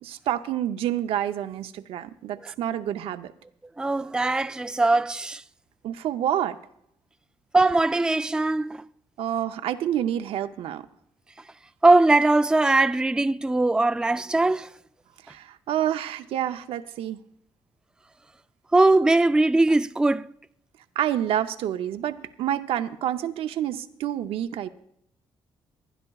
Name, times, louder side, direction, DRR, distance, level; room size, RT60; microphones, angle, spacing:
voice 1, 0.0-3.3 5.8-6.6 9.2-10.9 15.3-17.2 21.0-24.7, right 11 dB, 80° right, 0.6 m, -28 dB
voice 2, 3.8-5.4 7.5-8.8 11.8-14.7 18.7-20.3, right 2 dB, 10° right, 0.4 m, -20 dB
22.0 x 11.5 x 2.3 m
cardioid pair, 80°, 10 cm